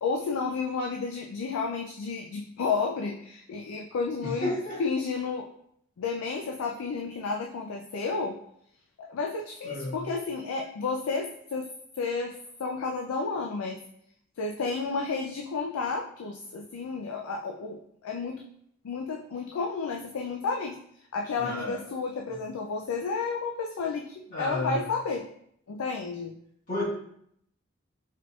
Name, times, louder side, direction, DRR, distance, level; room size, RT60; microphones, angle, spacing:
voice 1, 0.0-4.5 4.8-5.5 6.0-8.4 9.0-11.7 12.0-13.8 14.4-18.4 18.8-20.8 21.1-25.2 25.7-26.3, left 4 dB, 90° left, 1 dB, 0.4 m, -31 dB
voice 2, 4.2-4.8 9.6-10.0 21.4-21.8 24.3-24.8 26.7-26.8, left 1 dB, 40° left, -7 dB, 1.6 m, -32 dB
4.5 x 4.0 x 2.3 m, 0.69 s
head